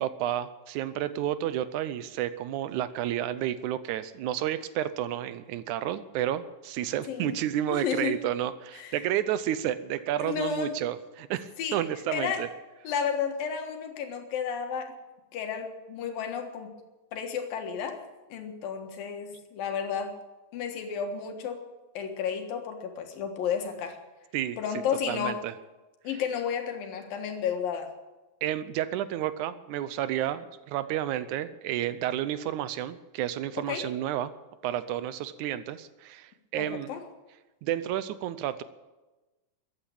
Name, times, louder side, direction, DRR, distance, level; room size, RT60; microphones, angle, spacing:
voice 1, 0.0-12.5 24.3-24.6 25.1-25.5 28.4-34.3 34.6-36.9 37.6-38.6, right 12 dB, 75° right, 14 dB, 2.0 m, -31 dB
voice 2, 7.1-7.4 7.7-8.2 8.8-9.0 10.2-10.8 11.6-11.8 12.1-12.5 12.8-14.9 15.3-16.7 17.1-18.0 18.3-20.1 20.5-21.6 21.9-24.0 24.6-25.4 26.0-27.9 33.6-33.9 36.6-37.0, left 7 dB, 90° left, 5 dB, 3.3 m, -32 dB
14.5 x 9.9 x 8.7 m, 1.1 s
omnidirectional pair, 3.9 m